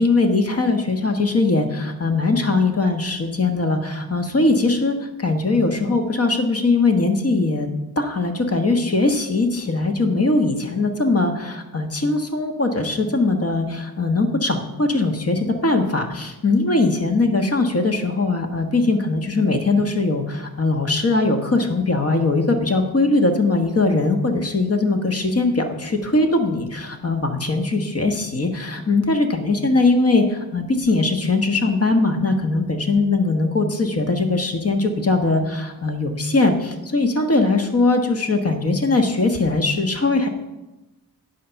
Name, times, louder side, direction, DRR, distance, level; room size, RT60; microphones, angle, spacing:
voice 1, 0.0-7.7 8.0-40.3, left 3 dB, 40° left, 5 dB, 1.4 m, -20 dB
9.8 x 5.5 x 5.8 m, 1.0 s
cardioid pair, 75°, 37 cm